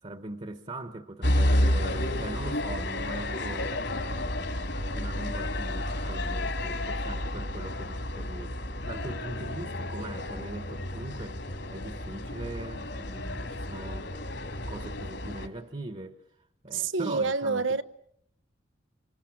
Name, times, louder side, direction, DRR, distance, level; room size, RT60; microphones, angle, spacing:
voice 1, 0.0-8.5 8.8-11.4 11.7-14.1 14.7-16.2 16.6-17.8, right 2 dB, 35° right, 1.3 m, -41 dB
sound 1, 1.2-15.5, left 1 dB, 70° left, 3.7 m, -31 dB
voice 2, 16.7-17.8, right 4 dB, 80° right, 1.1 m, -27 dB
27.5 x 27.0 x 7.4 m
head